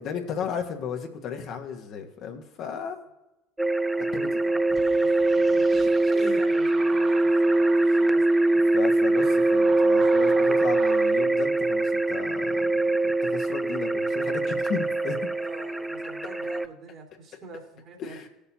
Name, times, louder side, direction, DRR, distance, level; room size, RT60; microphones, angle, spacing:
voice 1, 0.0-3.0 4.1-4.3 6.2-6.4 8.7-12.8 13.0-15.2 18.0-18.3, left 7 dB, 55° left, 2 dB, 1.4 m, -34 dB
sound 1, 3.6-16.7, right 2 dB, 5° right, 0.3 m, -23 dB
voice 2, 3.9-5.6 6.0-8.4 9.1-9.7 15.4-18.3, right 4 dB, 50° right, 2 dB, 2.3 m, -45 dB
sound 2, 4.7-11.1, right 4 dB, 35° right, 1.2 m, -41 dB
17.5 x 6.7 x 2.8 m, 0.97 s
hypercardioid pair, 70°, 0 cm